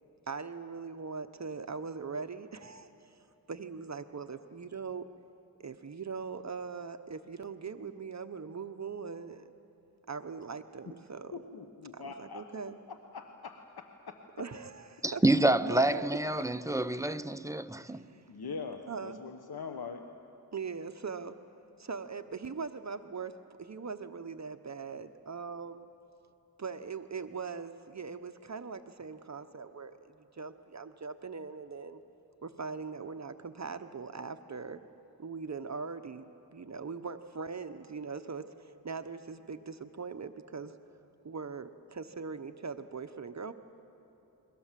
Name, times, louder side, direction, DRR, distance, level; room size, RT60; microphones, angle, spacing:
voice 1, 0.3-3.2 3.5-5.1 5.6-9.5 10.1-11.4 11.9-12.8 14.4-16.1 17.9-18.2 18.9-19.2 20.5-21.4 21.8-25.9 26.6-32.0 32.4-34.8 35.2-36.2 36.5-40.7 41.2-43.5, right 5 dB, 45° right, 0.9 m, -41 dB
voice 2, 11.3-12.5 12.9-14.2 18.3-20.0, left 5 dB, 75° left, 1.3 m, -43 dB
voice 3, 15.0-18.0, right 1 dB, 10° right, 0.7 m, -28 dB
29.5 x 22.5 x 7.5 m
wide cardioid pair, 80°, 38 cm